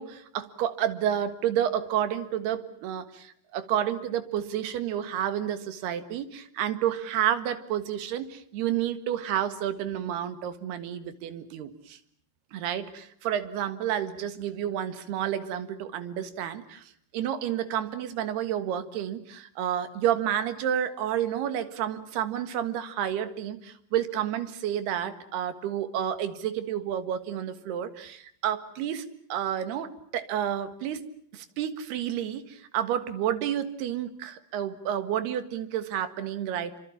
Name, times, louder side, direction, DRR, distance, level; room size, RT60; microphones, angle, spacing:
voice 1, 0.0-12.0 12.5-31.0 31.3-36.8, right 10 dB, 90° right, 11 dB, 3.7 m, -30 dB
28.0 x 25.0 x 7.3 m, 0.66 s
omnidirectional pair, 4.5 m